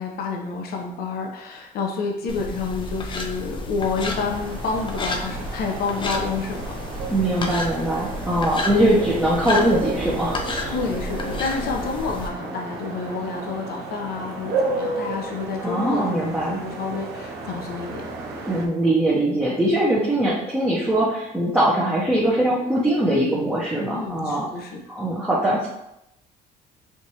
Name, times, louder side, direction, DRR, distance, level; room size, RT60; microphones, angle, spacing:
voice 1, 0.0-6.7 10.7-18.1 23.1-23.4 23.9-24.8, left 4 dB, 65° left, 1 dB, 0.7 m, -29 dB
sound 1, 2.3-12.3, left 2 dB, 30° left, 0.5 m, -31 dB
sound 2, 4.0-18.7, right 3 dB, 80° right, 0.7 m, -33 dB
voice 2, 7.1-10.7 15.6-16.6 18.4-24.5 24.9-25.7, right 1 dB, 5° right, -7 dB, 0.7 m, -22 dB
4.6 x 2.5 x 2.9 m, 0.84 s
cardioid pair, 110°, 17 cm